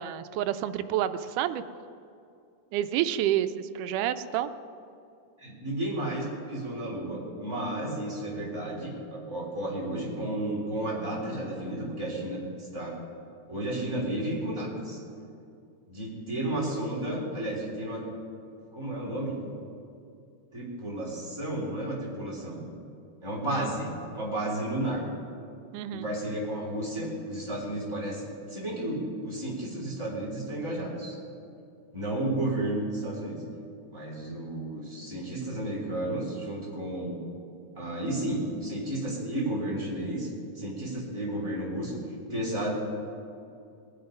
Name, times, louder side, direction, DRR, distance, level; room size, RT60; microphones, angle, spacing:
voice 1, 0.0-1.6 2.7-4.5 23.5-23.7 25.7-26.1, right 11 dB, 85° right, 11 dB, 2.1 m, -29 dB
voice 2, 5.4-13.0 13.5-15.0 15.9-18.0 18.7-19.4 20.5-22.6 23.2-25.0 25.9-31.2 31.9-33.4 33.9-37.2 37.7-40.3 40.5-42.0 42.3-42.7, right 1 dB, 10° right, -6 dB, 3.4 m, -32 dB
19.5 x 7.9 x 5.3 m, 2.4 s
omnidirectional pair, 3.7 m